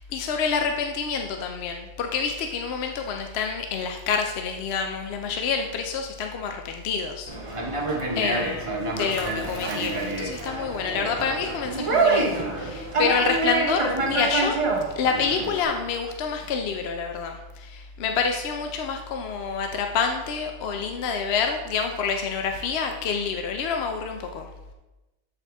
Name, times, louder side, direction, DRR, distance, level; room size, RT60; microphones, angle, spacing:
voice 1, 0.1-7.3 8.2-14.6 15.0-24.5, left 5 dB, 70° left, 4 dB, 0.8 m, -27 dB
Conversation, 7.3-15.6, right 3 dB, 30° right, 1.0 m, -27 dB
8.2 x 4.1 x 3.4 m, 1.0 s
omnidirectional pair, 1.2 m